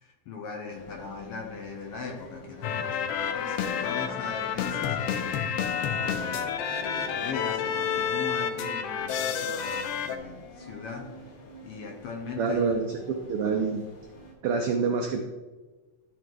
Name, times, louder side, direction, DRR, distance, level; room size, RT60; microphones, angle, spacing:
voice 1, 0.0-11.4 11.6-12.8, left 4 dB, 65° left, 2 dB, 1.6 m, -40 dB
sound 1, 0.7-14.3, left 1 dB, 45° left, 1.9 m, -48 dB
sound 2, 2.6-10.2, left 7 dB, 80° left, 1.4 m, -29 dB
voice 2, 12.4-13.8 14.4-15.2, right 5 dB, 85° right, 4 dB, 1.2 m, -27 dB
12.5 x 4.7 x 3.9 m, 1.2 s
omnidirectional pair, 3.4 m